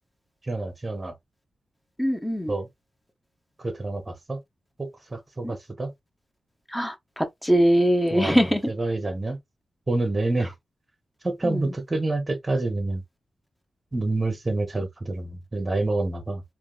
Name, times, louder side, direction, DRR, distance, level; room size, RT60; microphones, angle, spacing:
voice 1, 0.4-1.1 2.5-2.7 3.6-4.4 4.8-5.9 8.1-8.4 8.8-9.4 9.9-10.5 11.2-13.0 13.9-16.4, right 2 dB, 20° right, 0.8 m, -27 dB
voice 2, 2.0-2.5 5.4-5.5 6.7-8.7 11.4-11.7, equal, 5° left, 0.6 m, -22 dB
3.4 x 2.3 x 2.3 m
wide cardioid pair, 135°, 0 cm